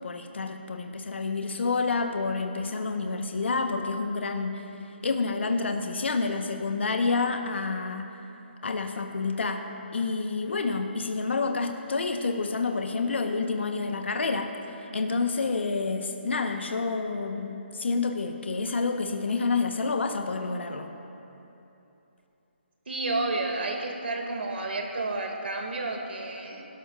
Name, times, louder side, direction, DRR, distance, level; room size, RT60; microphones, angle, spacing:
voice 1, 0.0-4.6 5.0-8.1 8.6-20.9, left 4 dB, 75° left, 5 dB, 1.0 m, -29 dB
voice 2, 22.9-26.7, right 2 dB, 65° right, 2 dB, 2.1 m, -31 dB
21.5 x 12.5 x 2.4 m, 2.9 s
hypercardioid pair, 170°, 6 cm